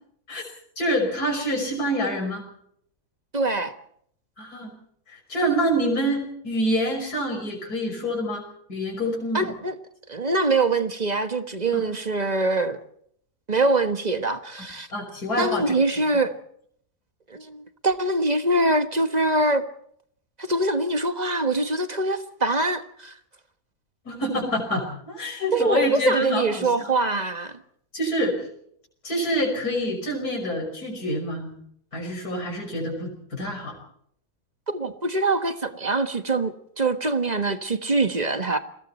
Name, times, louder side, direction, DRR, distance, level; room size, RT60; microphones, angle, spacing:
voice 1, 0.8-2.4 4.4-4.7 5.1-8.4 8.7-9.5 11.7-11.8 14.9-15.8 24.0-26.9 27.9-28.5 29.0-31.5 31.9-33.7, equal, 65° left, 6.3 m, -26 dB
voice 2, 3.3-3.7 9.3-9.7 10.1-12.8 13.5-14.9 15.4-16.3 17.3-19.6 20.4-23.1 25.5-27.6 34.7-38.6, right 2 dB, 25° right, 1.4 m, -24 dB
30.0 x 21.5 x 4.4 m
omnidirectional pair, 1.7 m